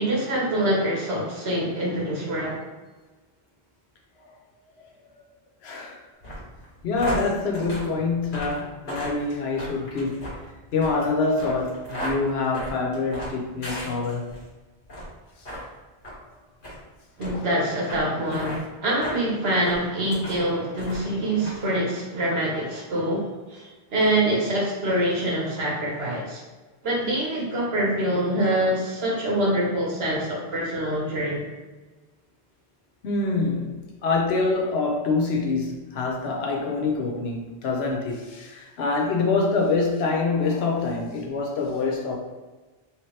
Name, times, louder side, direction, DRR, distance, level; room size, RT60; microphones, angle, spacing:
voice 1, 0.0-2.6 17.2-26.4 26.8-31.5, right 1 dB, 80° right, -3 dB, 1.3 m, -25 dB
voice 2, 5.6-6.0 6.8-10.4 10.7-14.3 17.3-17.4 18.3-18.4 21.4-21.6 33.0-42.2, left 3 dB, 85° left, 0 dB, 1.0 m, -26 dB
sound 1, 6.2-14.4 14.8-15.1 15.4-15.6 16.0-16.2 16.6-16.8 17.2-17.3 17.9-18.0 18.3-18.6 19.0-19.2 19.6-20.4 20.8-21.1 21.4-21.6, equal, 55° left, 1.5 m, -35 dB
3.3 x 3.0 x 3.2 m, 1.3 s
omnidirectional pair, 1.0 m